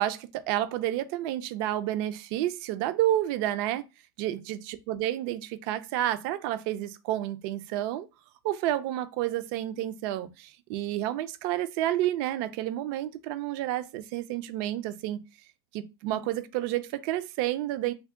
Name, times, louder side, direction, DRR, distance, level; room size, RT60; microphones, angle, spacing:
voice 1, 0.0-3.8 4.2-8.1 8.4-15.2 15.7-17.9, right 13 dB, 55° right, 0.4 m, -30 dB
3.5 x 2.1 x 3.5 m
supercardioid pair, 140°, 14 cm